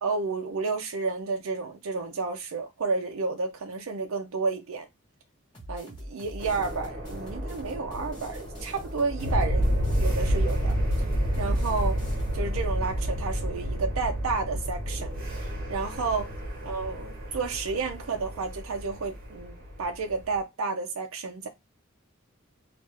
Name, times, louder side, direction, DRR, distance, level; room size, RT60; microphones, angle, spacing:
voice 1, 0.0-4.9 5.7-10.8 11.4-12.0 12.3-16.3 16.7-21.5, right 4 dB, 80° right, 0.5 m, -31 dB
sound 1, 5.5-12.4, equal, 20° left, 1.7 m, -43 dB
sound 2, 6.4-20.3, equal, 45° right, 1.2 m, -30 dB
3.2 x 2.4 x 3.3 m
head